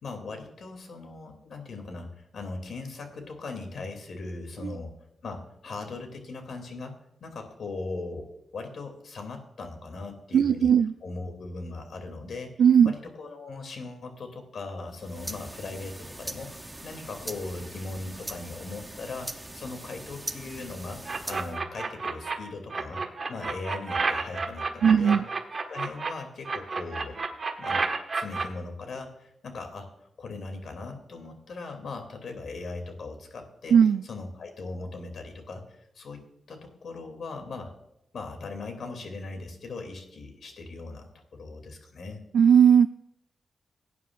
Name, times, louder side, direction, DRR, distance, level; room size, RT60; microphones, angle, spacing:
voice 1, 0.0-4.9 5.2-6.9 7.2-10.7 11.0-12.5 12.8-16.5 16.8-21.0 21.3-23.0 23.3-25.2 25.7-27.2 27.6-27.8 28.1-29.9 30.2-33.8 34.0-36.2 36.5-37.7 38.1-42.2, left 3 dB, 65° left, 5 dB, 2.6 m, -39 dB
voice 2, 10.3-10.9 12.6-12.9 24.8-25.2 33.7-34.0 42.3-42.9, right 7 dB, 85° right, 11 dB, 0.3 m, -18 dB
sound 1, 14.9-21.6, right 1 dB, 15° right, 0.8 m, -41 dB
sound 2, 21.1-22.3 22.7-26.1 26.4-28.4, right 4 dB, 40° right, 1.5 m, -30 dB
18.0 x 9.4 x 2.5 m, 0.84 s
wide cardioid pair, 105°, 0 cm